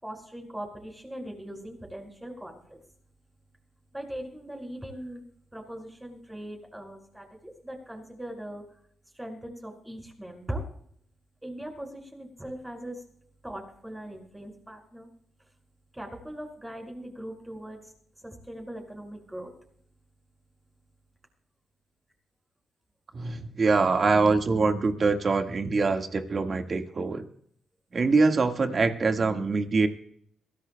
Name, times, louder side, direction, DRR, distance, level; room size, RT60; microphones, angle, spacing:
voice 1, 0.0-2.8 3.9-5.2 5.5-7.3 7.6-8.6 9.2-10.6 11.4-13.0 13.4-15.1 15.9-17.8 18.2-19.5, right 1 dB, 10° right, 2 dB, 5.6 m, -40 dB
voice 2, 23.1-27.3 27.9-29.9, right 4 dB, 40° right, 5 dB, 1.7 m, -24 dB
23.5 x 16.5 x 2.3 m, 0.66 s
cardioid pair, 100°, 0 cm